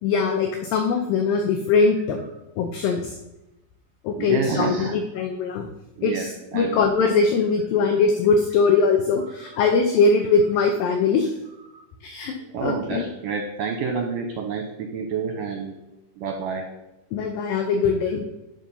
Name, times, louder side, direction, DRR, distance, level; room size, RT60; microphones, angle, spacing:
voice 1, 0.0-2.2 2.6-3.2 4.0-5.7 6.0-11.3 12.0-12.3 12.6-13.1 17.1-18.3, left 4 dB, 75° left, 4 dB, 2.2 m, -21 dB
voice 2, 4.2-4.9 6.0-6.3 6.5-6.8 9.4-9.5 11.7-11.8 12.4-15.7 16.2-16.6, right 5 dB, 75° right, 3 dB, 2.1 m, -29 dB
11.5 x 4.4 x 5.4 m, 0.96 s
omnidirectional pair, 4.8 m